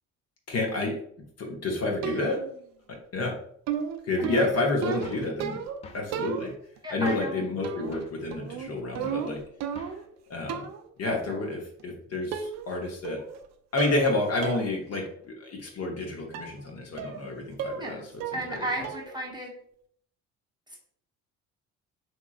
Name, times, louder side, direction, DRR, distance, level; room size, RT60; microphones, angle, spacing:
voice 1, 0.5-1.0 1.4-2.4 2.9-3.4 4.0-5.6 5.9-6.5 6.9-9.4 10.3-10.7 11.0-13.2 13.7-18.0 18.5-18.7, left 2 dB, 40° left, 0 dB, 0.9 m, -29 dB
sound 1, 2.0-2.6 3.7-5.8 6.1-6.8 7.6-8.0 8.3-10.1 10.5-10.9 11.8-11.9 12.3-12.8 13.0-13.4 13.8-14.1 14.4-14.7 15.1-15.2 16.3-16.6 17.0-17.3 17.6-17.9 18.2-18.6 18.8-19.2, right 8 dB, 45° right, 0.5 m, -34 dB
sound 2, 5.0-5.3 5.8-6.1 7.1-7.4 7.9-8.2 9.0-9.3 9.7-10.1, left 4 dB, 20° left, 0.3 m, -45 dB
voice 2, 6.8-7.4 11.3-11.4 17.8-18.1 18.3-19.5 20.7-20.8, right 1 dB, 10° right, -2 dB, 0.8 m, -34 dB
3.5 x 3.0 x 2.3 m, 0.64 s
figure-of-eight pair, 50°, 40 cm